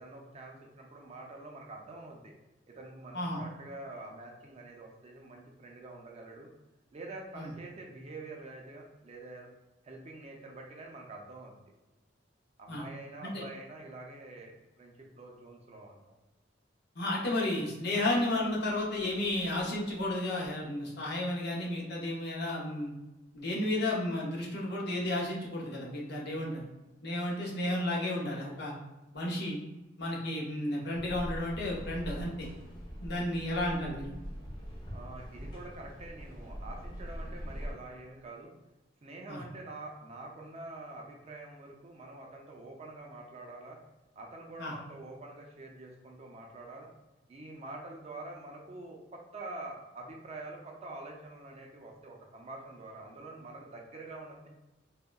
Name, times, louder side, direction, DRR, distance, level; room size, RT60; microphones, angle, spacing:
voice 1, 0.0-2.3 2.7-6.5 6.9-9.5 9.8-11.6 12.6-16.1 34.9-38.5 39.0-43.8 44.2-46.9 47.3-54.5, right 2 dB, 35° right, 0 dB, 0.4 m, -46 dB
voice 2, 17.0-22.9 23.3-26.7 27.0-28.7 29.1-29.6 30.0-32.5 33.0-34.1 39.3-39.4 44.6-44.7, left 1 dB, 60° left, -3 dB, 0.7 m, -32 dB
sound 1, 30.9-37.7, equal, 25° left, 0.6 m, -42 dB
3.6 x 2.1 x 2.2 m, 1.0 s
head